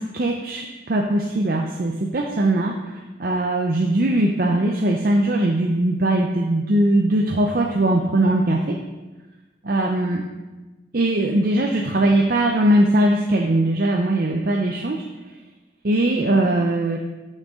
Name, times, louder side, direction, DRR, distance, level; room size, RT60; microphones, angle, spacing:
voice 1, 0.0-8.8 9.6-10.2 10.9-15.0 15.8-17.0, right 1 dB, 50° right, 1 dB, 0.6 m, -20 dB
11.5 x 6.4 x 3.7 m, 1.2 s
head